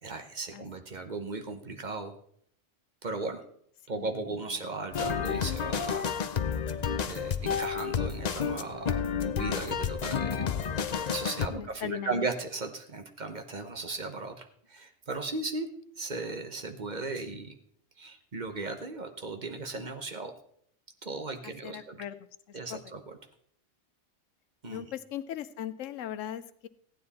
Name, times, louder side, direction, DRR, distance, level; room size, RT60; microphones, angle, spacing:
voice 1, 0.0-2.1 3.0-3.4 3.9-6.0 7.1-9.0 9.3-10.4 10.7-15.7 16.0-17.5 18.0-20.3 21.0-22.0 22.5-23.0 24.6-24.9, right 3 dB, 40° right, 6 dB, 1.1 m, -36 dB
sound 1, 4.9-11.5, left 7 dB, 50° left, 0.5 m, -30 dB
voice 2, 11.5-12.3 21.4-22.2 22.5-22.8 24.7-26.7, left 10 dB, 85° left, 13 dB, 1.0 m, -39 dB
15.0 x 9.5 x 4.2 m, 0.66 s
omnidirectional pair, 1.3 m